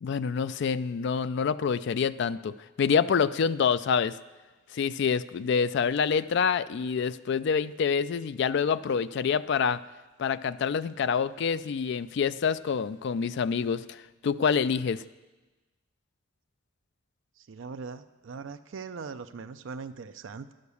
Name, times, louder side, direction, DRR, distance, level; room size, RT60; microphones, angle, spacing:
voice 1, 0.0-4.1 4.7-9.8 10.2-14.0 14.2-15.0, left 6 dB, 60° left, 14 dB, 0.3 m, -27 dB
voice 2, 17.4-20.5, right 5 dB, 65° right, 9 dB, 0.4 m, -40 dB
11.0 x 6.5 x 6.9 m, 1.2 s
head